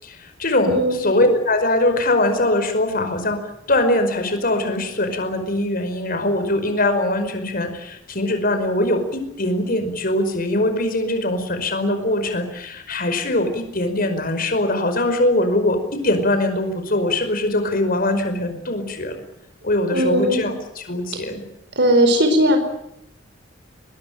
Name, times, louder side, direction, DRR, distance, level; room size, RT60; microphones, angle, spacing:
voice 1, 0.0-3.4 3.7-19.2 19.6-21.4, left 1 dB, 45° left, 8 dB, 5.2 m, -22 dB
voice 2, 0.6-1.0 19.9-20.5 21.1-21.2 21.8-22.6, right 1 dB, 60° right, 7 dB, 4.7 m, -18 dB
23.0 x 21.0 x 9.2 m, 0.80 s
head